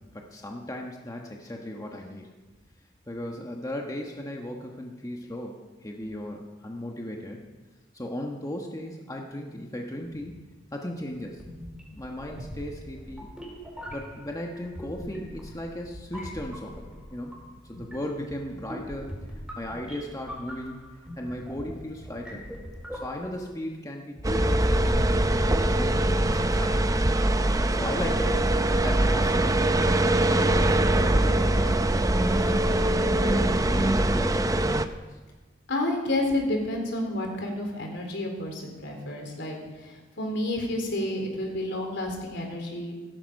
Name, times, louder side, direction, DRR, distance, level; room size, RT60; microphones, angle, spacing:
voice 1, 0.1-2.3 3.1-7.4 7.9-10.4 10.7-11.4 11.9-13.3 13.9-16.8 17.1-17.3 17.6-19.1 19.6-20.8 21.2-22.4 22.9-26.9 27.7-28.4 28.8-29.7 30.1-31.8 32.4-35.2, left 1 dB, 20° left, 1 dB, 1.3 m, -36 dB
sound 1, 11.4-23.5, equal, 5° right, 4.9 m, -42 dB
sound 2, 24.2-34.9, right 1 dB, 20° right, 0.6 m, -23 dB
voice 2, 35.7-43.0, left 1 dB, 65° left, 2 dB, 4.0 m, -30 dB
16.5 x 14.0 x 5.4 m, 1.3 s
head